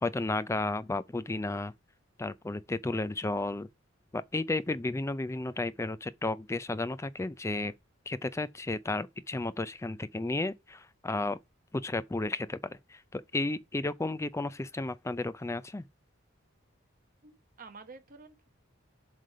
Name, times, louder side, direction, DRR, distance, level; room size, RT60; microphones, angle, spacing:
voice 1, 0.0-1.7 2.2-3.7 4.1-7.7 8.1-11.4 11.7-15.8, left 2 dB, 15° left, 0.4 m, -33 dB
voice 2, 17.2-18.5, right 4 dB, 45° right, 1.0 m, -50 dB
7.6 x 3.3 x 5.4 m
head